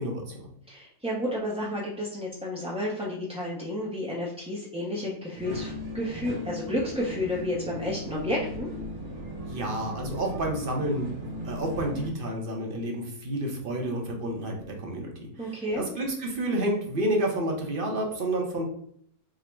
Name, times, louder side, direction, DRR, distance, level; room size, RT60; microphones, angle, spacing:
voice 1, 0.0-0.5 9.5-11.1 11.4-15.3 15.7-18.7, right 1 dB, 45° right, 1 dB, 0.9 m, -30 dB
voice 2, 0.7-8.7 15.4-15.8, left 1 dB, 10° right, -6 dB, 0.4 m, -31 dB
sound 1, 5.4-12.1, equal, 90° right, 1.4 m, -37 dB
3.7 x 2.1 x 4.4 m, 0.65 s
omnidirectional pair, 1.5 m